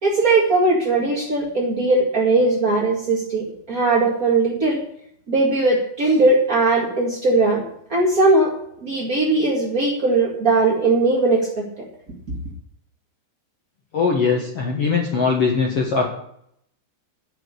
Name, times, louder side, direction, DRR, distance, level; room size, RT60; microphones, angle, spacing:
voice 1, 0.0-4.8 5.3-7.6 7.9-8.5 8.8-11.6, right 3 dB, 45° right, -3 dB, 1.1 m, -19 dB
voice 2, 13.9-16.1, left 5 dB, 70° left, 0 dB, 1.4 m, -20 dB
11.0 x 7.6 x 8.4 m, 0.71 s
omnidirectional pair, 5.2 m